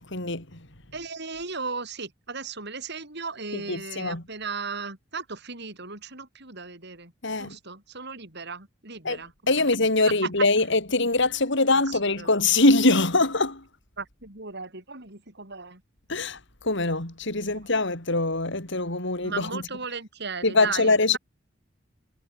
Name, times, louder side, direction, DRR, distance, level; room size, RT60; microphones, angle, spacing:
voice 1, 0.1-0.6 3.5-4.2 7.2-7.6 9.0-13.6 16.1-16.4 16.6-19.6 20.4-21.2, left 2 dB, 65° left, 5.1 m, -23 dB
voice 2, 0.9-9.3 9.6-9.7 10.1-10.3 11.7-12.3 14.0-15.8 19.2-21.2, right 4 dB, 60° right, 8.0 m, -36 dB
head